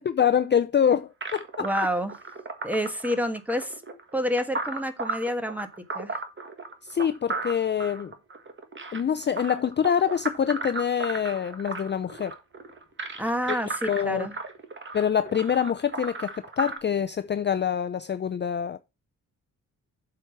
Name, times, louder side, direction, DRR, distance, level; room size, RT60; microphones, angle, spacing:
voice 1, 0.0-1.7 6.8-8.1 8.9-12.3 13.9-14.3 14.9-18.8, left 8 dB, 35° left, 0.5 m, -25 dB
sound 1, 1.2-16.8, right 3 dB, 35° right, 1.5 m, -35 dB
voice 2, 1.6-2.2 2.6-3.8 4.1-5.7 5.9-6.2 13.2-14.3, equal, 5° right, 1.3 m, -28 dB
7.6 x 4.8 x 6.1 m
wide cardioid pair, 120°, 33 cm